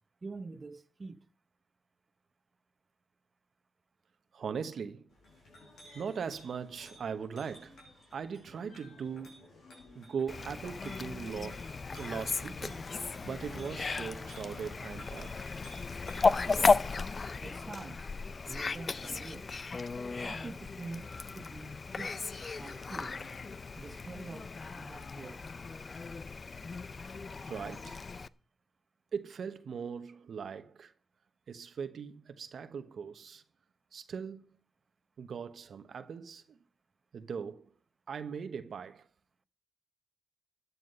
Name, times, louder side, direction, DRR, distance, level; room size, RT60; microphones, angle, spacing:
voice 1, 0.2-1.2 16.5-16.8 17.4-18.1 18.4-19.5 20.2-23.3 23.7-25.4, right 3 dB, 40° right, 1.1 m, -46 dB
voice 2, 4.3-5.0 5.9-7.8 8.1-9.5 9.9-12.8 13.2-15.3 27.4-28.0 29.1-30.9 31.5-33.4 33.9-34.6 35.2-36.6 37.1-37.7 38.1-39.0, right 6 dB, 70° right, 1.0 m, -40 dB
Chink clink, 5.1-16.4, left 1 dB, 75° left, 6.9 m, -55 dB
Fowl, 10.3-28.3, left 4 dB, 45° left, 0.6 m, -35 dB
14.0 x 9.6 x 5.4 m
cardioid pair, 50°, 0 cm